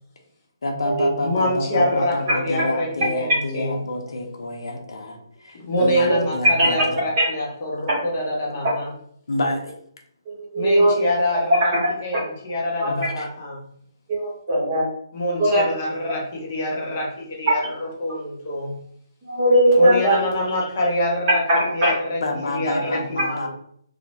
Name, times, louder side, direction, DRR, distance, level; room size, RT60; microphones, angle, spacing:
voice 1, 0.6-7.0 9.3-9.8 12.9-13.3 20.5-20.6 22.2-23.5, left 1 dB, 65° left, 2 dB, 0.6 m, -28 dB
voice 2, 1.2-3.9 5.7-8.9 10.6-11.7 12.0-13.6 15.1-18.8 19.8-21.4 21.7-22.2 22.5-23.5, left 1 dB, 25° left, -3 dB, 0.6 m, -25 dB
voice 3, 5.8-6.2 6.6-6.8 7.2-7.3 10.3-11.0 14.1-14.9 15.4-15.6 19.3-20.2 21.5-21.9, right 1 dB, 20° right, -6 dB, 0.8 m, -19 dB
2.4 x 2.0 x 2.8 m, 0.65 s
hypercardioid pair, 180°, 2 cm